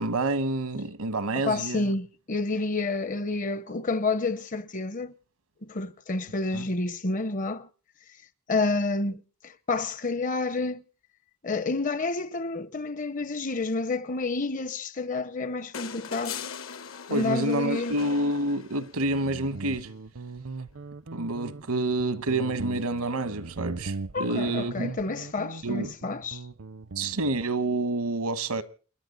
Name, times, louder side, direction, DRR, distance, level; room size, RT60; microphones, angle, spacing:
voice 1, 0.0-1.9 6.5-6.6 17.1-19.9 21.1-24.9 25.6-25.9 27.0-28.6, right 2 dB, 85° right, 1.2 m, -28 dB
voice 2, 1.3-5.1 5.6-7.7 8.5-10.8 11.4-16.4 17.1-18.0 24.1-26.4, left 3 dB, 35° left, 0.7 m, -29 dB
sound 1, 15.7-19.1 20.6-20.7, left 7 dB, 65° left, 1.0 m, -40 dB
Guitar, 18.9-27.4, right 3 dB, 65° right, 0.6 m, -39 dB
29.0 x 11.0 x 3.9 m
head